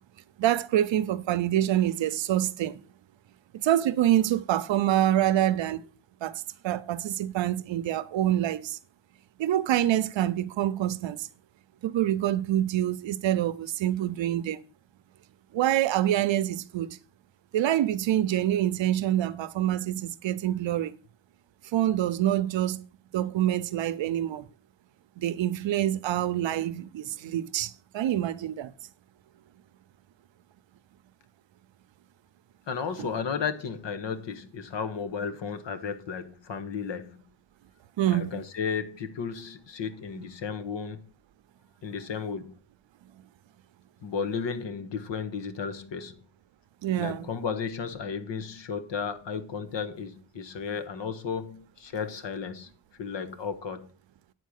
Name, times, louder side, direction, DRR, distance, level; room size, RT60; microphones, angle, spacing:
voice 1, 0.4-2.8 3.5-5.8 6.2-8.8 9.4-11.3 11.8-14.6 15.5-17.0 17.5-21.0 21.7-22.8 23.1-24.5 25.2-28.7 33.0-33.1 38.0-38.3 46.8-47.2, right 12 dB, 80° right, 0.7 m, -26 dB
voice 2, 32.7-37.2 38.1-41.1 41.8-42.6 44.0-46.2 47.0-52.7 53.0-53.9, left 6 dB, 70° left, 1.3 m, -34 dB
9.2 x 4.5 x 6.5 m
wide cardioid pair, 150°, 45 cm